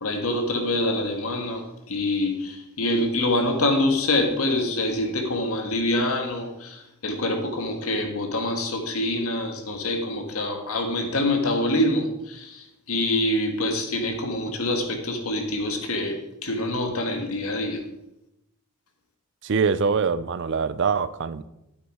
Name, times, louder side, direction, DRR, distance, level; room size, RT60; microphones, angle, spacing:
voice 1, 0.0-17.8, left 1 dB, 75° left, 4 dB, 1.7 m, -25 dB
voice 2, 19.4-21.5, right 5 dB, 55° right, 15 dB, 0.5 m, -24 dB
9.3 x 8.5 x 4.8 m, 0.87 s
head